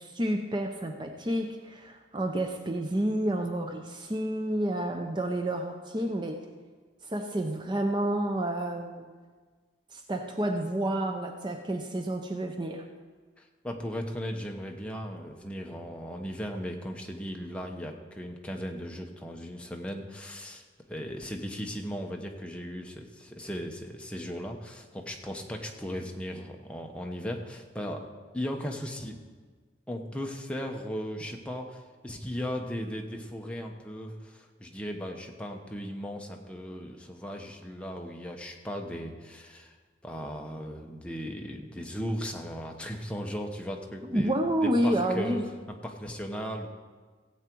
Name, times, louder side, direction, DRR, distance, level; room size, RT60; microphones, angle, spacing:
voice 1, 0.0-6.5 7.0-9.0 9.9-12.8 44.1-45.4, right 1 dB, 25° right, 4 dB, 0.7 m, -29 dB
voice 2, 13.4-20.6 20.9-28.1 28.3-29.2 29.9-39.7 40.0-44.3 44.6-45.4 45.8-46.7, equal, 5° left, 1 dB, 1.0 m, -37 dB
16.5 x 8.2 x 4.6 m, 1.5 s
head